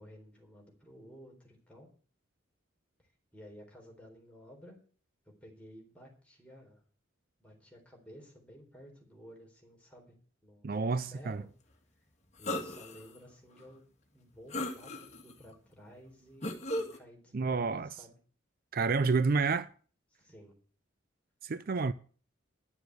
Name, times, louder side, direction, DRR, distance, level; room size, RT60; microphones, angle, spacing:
voice 1, 0.0-1.9 3.0-4.8 5.3-6.8 7.4-10.1 10.4-11.5 12.4-13.9 14.1-18.2 20.1-20.5, equal, 5° left, 3.9 m, -54 dB
voice 2, 10.6-11.4 17.3-17.9 18.7-19.7 21.4-21.9, right 4 dB, 50° right, 0.5 m, -29 dB
sound 1, 12.4-13.0 13.6-13.7 14.5-15.3 16.4-17.0, left 1 dB, 35° left, 1.9 m, -36 dB
11.5 x 7.0 x 7.9 m
head